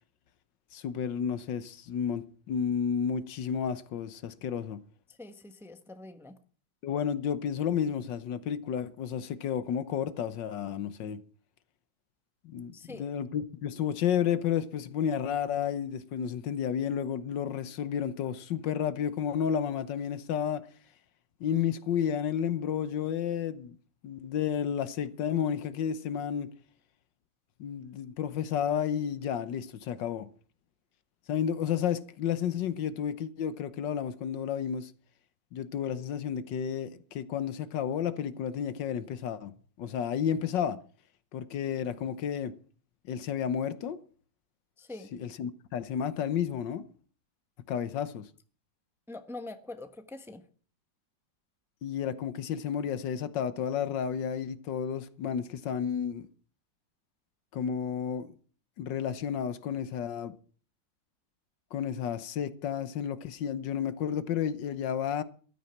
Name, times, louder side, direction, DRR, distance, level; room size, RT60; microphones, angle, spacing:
voice 1, 0.7-4.8 6.8-11.2 12.4-20.7 21.4-23.8 24.0-26.5 27.6-30.3 31.3-34.9 35.5-40.8 41.3-42.5 43.1-44.0 45.1-46.9 47.7-48.3 51.8-56.3 57.5-58.3 58.8-60.3 61.7-65.2, left 8 dB, 85° left, 1.7 m, -31 dB
voice 2, 5.2-6.4 12.7-13.0 44.8-45.1 49.1-50.4, left 2 dB, ahead, 0.9 m, -44 dB
14.0 x 13.0 x 5.9 m
omnidirectional pair, 1.9 m